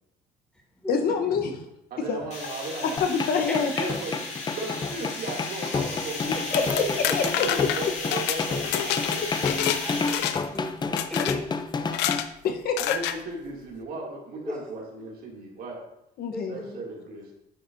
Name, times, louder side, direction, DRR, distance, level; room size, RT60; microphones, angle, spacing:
voice 1, 0.9-1.5 2.1-2.2 2.8-3.7 6.5-6.8 7.1-7.2 12.4-12.9 16.2-16.5, left 6 dB, 65° left, 5 dB, 1.0 m, -26 dB
voice 2, 1.9-3.0 3.8-4.3 4.5-6.8 7.2-9.5 11.8-12.1 12.8-15.8 16.5-17.3, right 2 dB, 60° right, -1 dB, 2.5 m, -37 dB
sound 1, 2.3-10.3, left 3 dB, 45° left, 2.5 m, -35 dB
sound 2, 3.0-12.2, left 4 dB, 25° left, 0.5 m, -30 dB
voice 3, 3.3-3.9 6.4-7.2 9.0-11.6 14.3-14.6 16.3-16.8, left 1 dB, 5° left, -2 dB, 2.5 m, -36 dB
sound 3, 6.3-9.8 10.1-10.6 11.0-11.4 11.9-12.3 12.8-13.2, left 12 dB, 85° left, 0.5 m, -28 dB
9.7 x 7.9 x 2.6 m, 0.83 s
cardioid pair, 110°, 17 cm